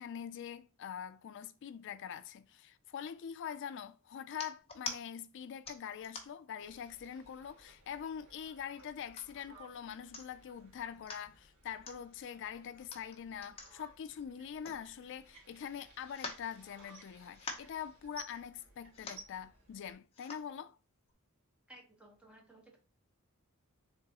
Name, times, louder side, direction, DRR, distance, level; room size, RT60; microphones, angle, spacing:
voice 1, 0.0-20.8, left 8 dB, 55° left, 0.3 m, -44 dB
sound 1, 4.3-5.0 5.6-6.5 7.1-7.2 7.5-8.2 8.8-9.4 9.8-9.9 10.1-10.5 10.9-11.2 11.8-12.0 12.8-15.3 15.6-15.7 16.1-17.0 17.3-17.8 18.6-18.7 18.9-19.3 20.1-20.5 21.1-21.2, left 4 dB, 25° left, 0.7 m, -46 dB
sound 2, 6.6-19.9, right 2 dB, 85° right, 1.5 m, -59 dB
voice 2, 21.7-22.8, right 1 dB, 5° right, 1.1 m, -57 dB
3.8 x 3.5 x 2.8 m
head